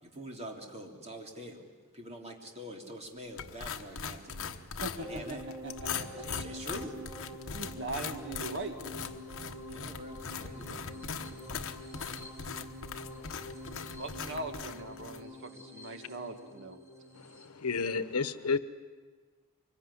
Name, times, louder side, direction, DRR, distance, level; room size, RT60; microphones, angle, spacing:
voice 1, 0.0-1.7 1.9-4.7 5.0-5.4 6.1-6.9 9.7-11.5, equal, 30° right, 2 dB, 3.2 m, -45 dB
sound 1, 3.4-15.2, left 6 dB, 65° left, 1.2 m, -41 dB
voice 2, 4.8-6.4 7.5-8.8 13.9-16.8, right 2 dB, 55° right, 6 dB, 2.2 m, -40 dB
sound 2, 5.0-17.5, equal, 15° right, 4.3 m, -46 dB
voice 3, 17.2-18.6, left 4 dB, 85° left, 13 dB, 1.1 m, -31 dB
24.5 x 22.0 x 9.9 m, 1.4 s
head